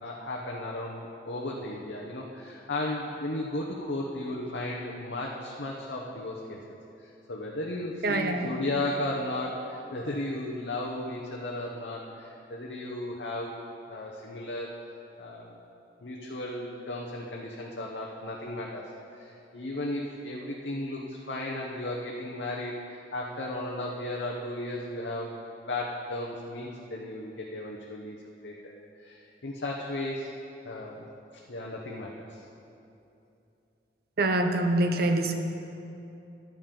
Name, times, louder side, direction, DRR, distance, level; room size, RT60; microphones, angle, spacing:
voice 1, 0.0-6.6 7.0-13.6 13.9-14.7 15.2-15.6 16.0-25.4 25.6-28.2 28.4-30.3 30.6-31.1 31.3-32.4, left 1 dB, 80° left, -2 dB, 1.0 m, -35 dB
voice 2, 8.0-8.6 34.2-35.3, right 2 dB, 60° right, 5 dB, 0.8 m, -25 dB
13.5 x 10.5 x 3.9 m, 2.8 s
head